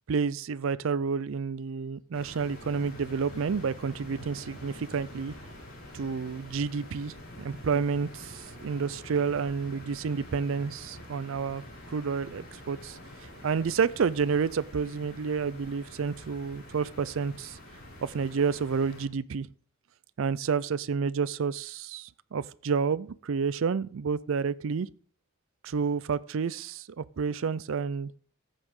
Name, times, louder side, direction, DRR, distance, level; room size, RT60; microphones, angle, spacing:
voice 1, 0.1-5.3 5.9-11.6 11.9-17.6 18.0-19.5 20.2-24.9 25.6-28.1, right 5 dB, 65° right, 0.4 m, -30 dB
sound 1, 2.1-19.1, left 1 dB, 70° left, 5.3 m, -47 dB
14.5 x 9.0 x 3.7 m
head